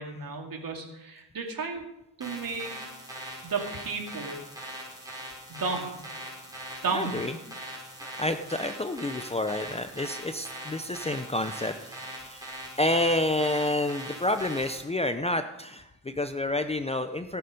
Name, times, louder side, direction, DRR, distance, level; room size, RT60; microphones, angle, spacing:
voice 1, 0.0-1.8 2.2-2.7 3.4-4.4 5.5-6.0 6.8-7.2, right 4 dB, 55° right, 2 dB, 2.6 m, -33 dB
sound 1, 2.2-14.8, right 1 dB, 10° right, 4.8 m, -41 dB
voice 2, 6.9-7.3 8.2-17.4, left 1 dB, 15° left, 8 dB, 0.6 m, -29 dB
17.5 x 7.0 x 5.2 m, 0.90 s
cardioid pair, 105°, 42 cm